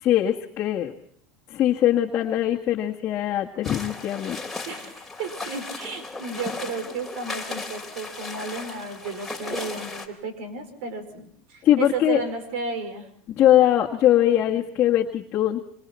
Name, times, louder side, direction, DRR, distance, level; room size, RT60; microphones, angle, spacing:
voice 1, 0.0-0.9 1.5-4.4 11.6-12.2 13.3-15.6, left 12 dB, 40° left, -2 dB, 1.8 m, -21 dB
sound 1, 3.6-10.1, left 3 dB, 5° left, 3.3 m, -36 dB
voice 2, 4.7-13.1, right 4 dB, 75° right, 8 dB, 5.0 m, -33 dB
26.0 x 25.5 x 4.4 m, 0.63 s
supercardioid pair, 125°, 6 cm